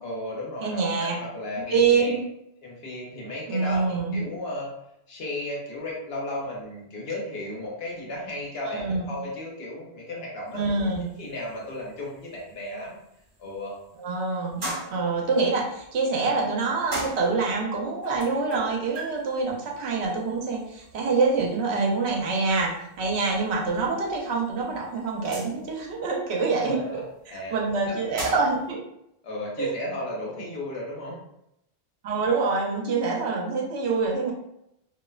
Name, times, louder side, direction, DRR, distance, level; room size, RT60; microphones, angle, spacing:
voice 1, 0.0-2.1 2.6-4.7 5.1-10.9 11.2-13.0 13.4-13.7 26.6-27.6 27.9-28.0 29.2-31.2, left 1 dB, 70° left, -4 dB, 1.0 m, -35 dB
voice 2, 0.6-1.2 1.7-2.2 3.5-4.2 8.7-9.1 10.5-11.0 14.0-14.6 14.9-22.7 23.0-27.0 27.5-28.8 29.6-29.7 32.0-34.3, right 4 dB, 90° right, -2 dB, 0.9 m, -25 dB
sound 1, 10.5-28.7, right 1 dB, 50° right, 0.9 m, -42 dB
2.6 x 2.1 x 2.3 m, 0.80 s
omnidirectional pair, 1.1 m